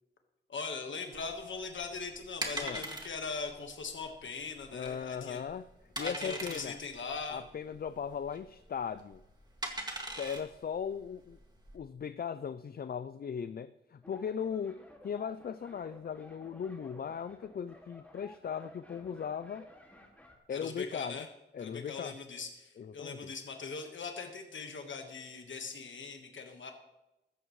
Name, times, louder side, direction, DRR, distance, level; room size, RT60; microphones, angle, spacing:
voice 1, 0.5-5.4 6.0-7.4 20.5-21.3 21.6-26.7, left 4 dB, 90° left, 4 dB, 1.4 m, -40 dB
sound 1, 1.1-11.8, right 1 dB, 20° right, 2.1 m, -42 dB
voice 2, 2.5-2.8 4.7-5.7 6.0-6.8 7.3-9.2 10.2-11.4 11.7-19.7 20.5-21.3 21.5-22.2 22.8-23.3, left 7 dB, 50° left, 13 dB, 0.4 m, -38 dB
sound 2, 14.0-20.4, left 1 dB, 10° left, 2.1 m, -55 dB
16.0 x 13.5 x 3.2 m, 0.98 s
wide cardioid pair, 130°, 19 cm